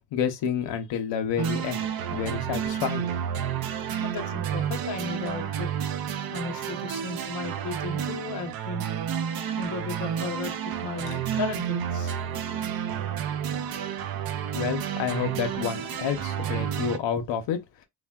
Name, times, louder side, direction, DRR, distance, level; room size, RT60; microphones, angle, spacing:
voice 1, 0.1-1.8 2.1-3.1 14.5-17.6, left 8 dB, 80° left, 0.7 m, -29 dB
sound 1, 1.4-17.0, right 9 dB, 60° right, 0.5 m, -30 dB
voice 2, 4.0-5.7 6.3-8.9 9.6-12.2 12.4-12.5, left 4 dB, 45° left, 0.7 m, -35 dB
3.3 x 2.1 x 2.2 m
cardioid pair, 155°, 42 cm